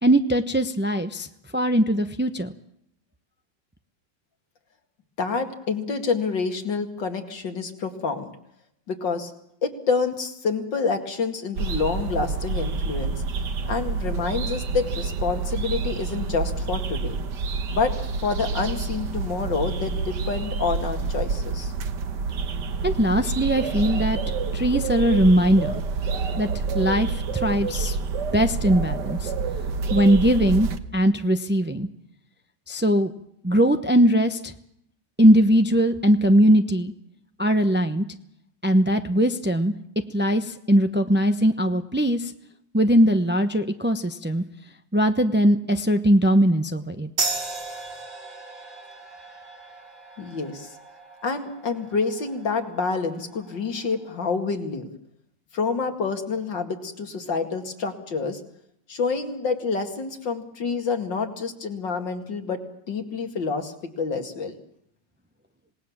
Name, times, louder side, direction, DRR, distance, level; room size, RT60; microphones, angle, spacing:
voice 1, 0.0-1.3 1.5-2.5 22.8-24.2 24.5-25.8 26.4-26.5 26.7-28.0 28.3-29.3 29.9-31.9 32.7-33.1 33.4-34.5 35.2-36.9 37.4-38.0 38.6-39.7 40.1-42.3 42.7-44.4 44.9-47.1, equal, 15° right, 8 dB, 0.4 m, -20 dB
voice 2, 5.2-8.3 8.9-9.3 9.6-13.2 13.7-17.2 17.7-17.9 18.2-21.7 50.2-50.7 51.2-54.9 55.5-58.4 58.9-64.6, left 4 dB, 75° left, 5 dB, 3.0 m, -28 dB
sound 1, 11.6-30.8, right 4 dB, 65° right, 1.8 m, -28 dB
sound 2, 47.2-54.3, right 3 dB, 85° right, 5.7 m, -36 dB
27.0 x 19.0 x 7.3 m, 0.74 s
omnidirectional pair, 2.0 m